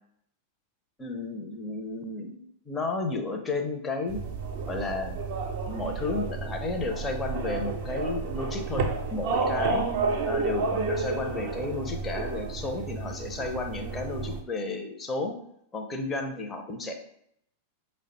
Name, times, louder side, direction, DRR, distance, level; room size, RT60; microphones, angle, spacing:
voice 1, 1.0-4.2 4.7-5.2 5.7-9.8 10.3-15.3 15.7-16.9, left 3 dB, 20° left, 4 dB, 0.6 m, -32 dB
sound 1, 4.1-14.4, right 4 dB, 50° right, 0.5 m, -31 dB
4.9 x 2.1 x 2.9 m, 0.73 s
figure-of-eight pair, 90°, 0 cm